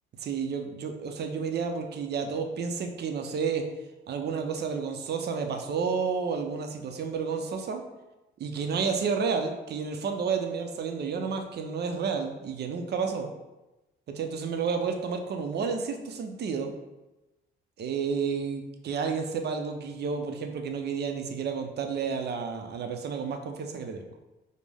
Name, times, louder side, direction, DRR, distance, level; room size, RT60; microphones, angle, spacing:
voice 1, 0.2-3.7 4.1-7.8 8.4-13.3 14.1-16.7 17.8-24.1, right 5 dB, 55° right, 5 dB, 0.6 m, -31 dB
5.2 x 2.1 x 3.4 m, 1.0 s
cardioid pair, 90°, 20 cm